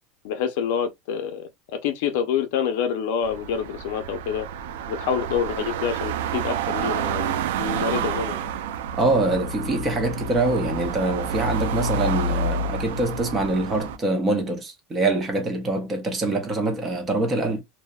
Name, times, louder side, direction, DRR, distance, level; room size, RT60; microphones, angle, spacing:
voice 1, 0.2-4.5 4.9-8.4, left 7 dB, 60° left, 0.5 m, -27 dB
sound 1, 3.2-14.0, right 4 dB, 80° right, 0.3 m, -29 dB
voice 2, 9.0-17.6, right 2 dB, 20° right, 0.5 m, -24 dB
2.6 x 2.0 x 2.3 m
supercardioid pair, 170°, 0 cm